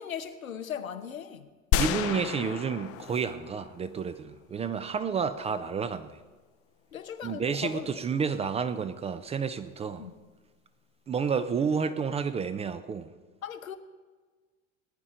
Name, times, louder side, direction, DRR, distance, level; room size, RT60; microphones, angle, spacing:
voice 1, 0.0-1.5 6.9-8.0 10.0-10.2 13.4-13.8, left 8 dB, 85° left, 1.0 m, -38 dB
sound 1, 1.7-4.0, left 10 dB, 35° left, 0.6 m, -31 dB
voice 2, 1.8-6.1 7.2-10.1 11.1-13.1, right 6 dB, 15° right, 0.4 m, -30 dB
18.5 x 10.0 x 3.8 m
hypercardioid pair, 90°, 40 cm